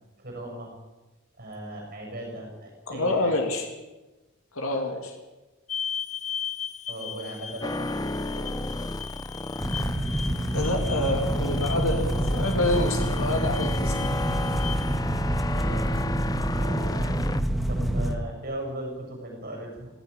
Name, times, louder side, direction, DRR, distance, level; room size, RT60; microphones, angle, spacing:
voice 1, 0.2-0.7 1.4-3.3 6.9-7.9 8.2-8.7 15.5-15.9 16.5-17.1 17.5-19.9, right 1 dB, 45° right, 0 dB, 7.1 m, -38 dB
voice 2, 2.9-3.7 4.5-5.1 10.5-14.2 15.9-16.1, left 2 dB, 70° left, 3 dB, 2.6 m, -27 dB
sound 1, 5.7-15.0, left 8 dB, 30° left, 1.0 m, -38 dB
sound 2, 7.6-17.4, left 2 dB, 15° left, 0.6 m, -33 dB
sound 3, 9.6-18.2, right 1 dB, ahead, 1.7 m, -27 dB
17.0 x 16.5 x 9.9 m, 1.1 s
head